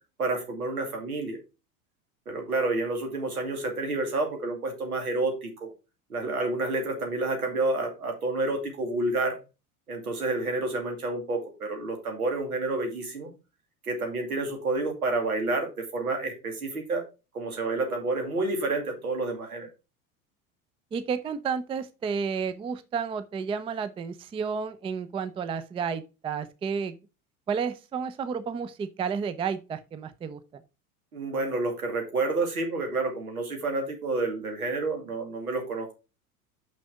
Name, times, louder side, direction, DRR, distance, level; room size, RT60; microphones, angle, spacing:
voice 1, 0.2-1.4 2.3-5.7 6.1-9.4 9.9-13.3 13.8-17.0 17.3-19.7 31.1-35.9, right 2 dB, 75° right, 2.5 m, -29 dB
voice 2, 20.9-27.0 27.5-30.4, right 6 dB, 15° right, 0.5 m, -31 dB
6.1 x 5.8 x 4.9 m
figure-of-eight pair, 75°, 44 cm